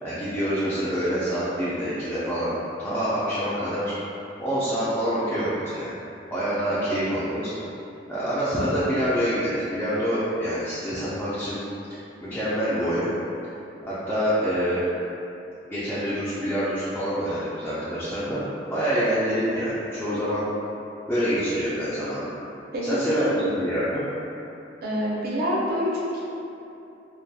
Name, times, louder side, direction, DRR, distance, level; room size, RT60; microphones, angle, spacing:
voice 1, 0.0-2.5 2.8-3.9 4.4-5.9 6.3-7.5 8.1-11.6 11.9-13.1 13.9-14.8 15.7-20.5 21.1-22.3 22.8-24.0, equal, 10° left, -12 dB, 0.3 m, -26 dB
voice 2, 6.7-7.1 22.7-23.4 24.8-26.2, equal, 55° right, -6 dB, 0.5 m, -27 dB
2.3 x 2.2 x 2.6 m, 2.9 s
head